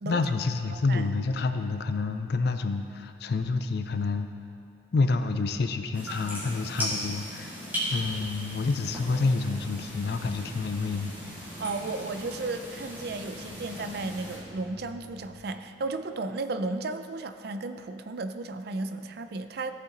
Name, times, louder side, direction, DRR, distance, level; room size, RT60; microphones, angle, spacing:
voice 1, 0.0-4.3 4.9-7.6 7.9-11.1, left 3 dB, 55° left, 8 dB, 0.4 m, -28 dB
sound 1, 5.9-14.4, equal, 10° right, 2.4 m, -37 dB
sound 2, 7.8-15.5, left 3 dB, 40° left, 1.2 m, -52 dB
voice 2, 11.6-19.7, right 3 dB, 55° right, 9 dB, 0.4 m, -34 dB
14.5 x 5.7 x 3.9 m, 2.5 s
head